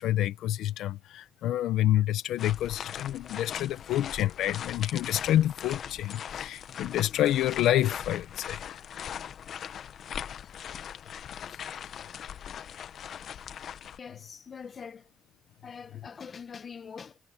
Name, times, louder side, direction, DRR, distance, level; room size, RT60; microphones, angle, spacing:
voice 1, 0.0-8.9 11.5-11.6, left 13 dB, 85° left, 0.9 m, -28 dB
sound 1, 2.4-14.0, left 8 dB, 65° left, 1.1 m, -40 dB
voice 2, 14.0-15.1 15.6-17.2, left 6 dB, 45° left, 1.3 m, -43 dB
cardioid pair, 90°, 0 cm